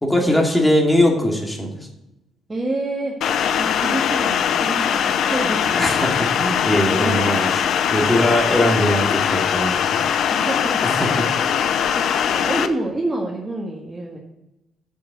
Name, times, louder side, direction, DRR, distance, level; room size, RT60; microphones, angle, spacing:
voice 1, 0.0-1.7 5.8-7.5 7.9-10.0 10.8-11.2, left 1 dB, 10° left, 0 dB, 2.5 m, -20 dB
voice 2, 2.5-3.1 3.6-5.9 7.0-7.4 10.3-10.8 11.4-12.0 12.3-14.2, right 2 dB, 25° right, -3 dB, 1.9 m, -28 dB
sound 1, 3.2-12.7, left 8 dB, 70° left, 0.7 m, -21 dB
7.4 x 7.3 x 6.9 m, 0.92 s
cardioid pair, 90°, 0 cm